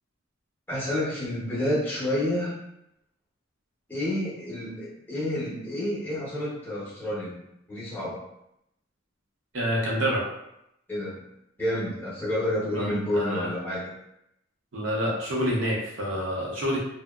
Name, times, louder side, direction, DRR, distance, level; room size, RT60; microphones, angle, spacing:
voice 1, 0.7-2.6 3.9-7.4 7.7-8.3 10.9-11.2 11.6-13.9, left 1 dB, 10° left, -7 dB, 0.6 m, -29 dB
voice 2, 9.5-10.3 12.7-12.9 13.1-13.5 14.7-16.8, equal, 70° right, -3 dB, 0.7 m, -27 dB
2.7 x 2.0 x 2.2 m, 0.81 s
head